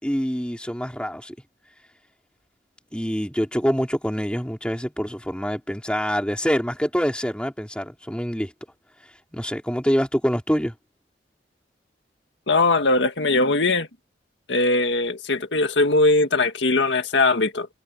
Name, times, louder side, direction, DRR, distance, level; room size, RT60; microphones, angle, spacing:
voice 1, 0.0-1.3 2.9-8.5 9.3-10.7, equal, 5° left, 4.1 m, -25 dB
voice 2, 12.5-13.9 14.5-17.7, left 2 dB, 80° left, 1.8 m, -20 dB
head